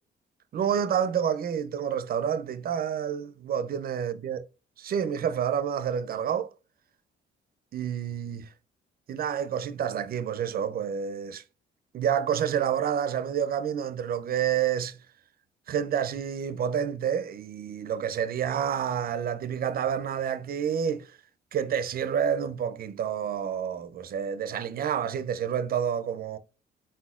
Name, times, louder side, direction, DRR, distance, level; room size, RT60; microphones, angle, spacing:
voice 1, 0.5-4.4 4.8-6.5 7.7-8.5 9.1-11.4 11.9-15.0 15.7-21.1 21.5-26.4, right 8 dB, 50° right, 0.4 m, -29 dB
4.1 x 3.9 x 2.3 m
cardioid pair, 90°, 20 cm